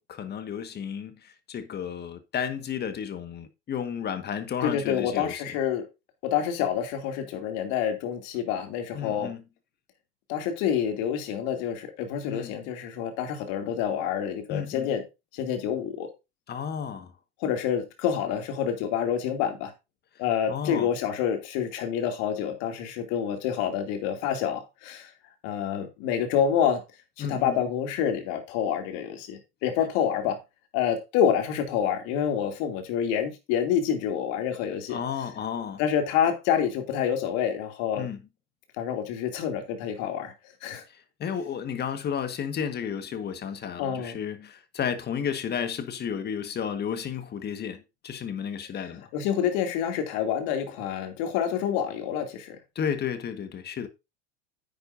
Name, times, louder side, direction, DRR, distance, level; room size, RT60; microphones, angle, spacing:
voice 1, 0.2-5.5 8.9-9.4 12.3-12.6 14.5-14.9 16.5-17.1 20.5-20.9 27.2-27.6 34.9-35.8 38.0-38.2 40.9-49.1 52.7-53.9, left 8 dB, 35° left, 1.7 m, -32 dB
voice 2, 4.6-5.9 6.2-9.3 10.3-15.0 15.3-16.1 17.4-19.7 20.2-25.1 25.4-26.8 27.2-30.4 30.7-35.0 35.8-38.0 38.8-40.3 40.6-40.8 43.8-44.1 49.1-52.6, left 8 dB, 60° left, 2.8 m, -27 dB
10.5 x 8.7 x 2.7 m
hypercardioid pair, 85°, 31 cm